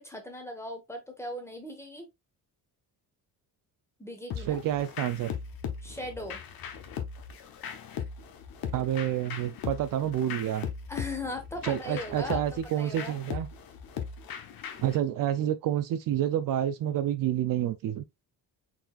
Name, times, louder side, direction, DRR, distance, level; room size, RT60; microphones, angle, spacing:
voice 1, 0.0-2.1 4.0-4.6 5.8-6.4 10.9-12.4 12.8-13.2, left 2 dB, 5° left, 1.1 m, -38 dB
sound 1, 4.3-15.0, left 7 dB, 65° left, 1.0 m, -39 dB
voice 2, 4.5-5.3 8.7-10.7 11.6-13.5 14.8-18.0, right 11 dB, 60° right, 0.5 m, -28 dB
4.7 x 4.1 x 2.3 m
cardioid pair, 165°, 38 cm